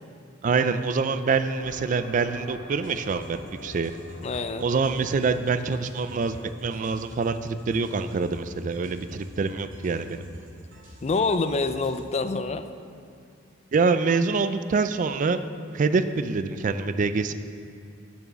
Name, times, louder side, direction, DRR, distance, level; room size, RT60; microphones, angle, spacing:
voice 1, 0.4-3.9 4.6-10.3 13.7-15.4 15.7-17.3, right 4 dB, 40° right, 11 dB, 0.3 m, -25 dB
sound 1, 1.6-7.2, left 3 dB, 70° left, 0.7 m, -47 dB
sound 2, 2.8-12.0, equal, 80° right, 2.1 m, -47 dB
voice 2, 4.2-4.7 11.0-12.7, left 3 dB, 35° left, 10 dB, 0.4 m, -26 dB
7.1 x 6.1 x 6.9 m, 2.5 s
head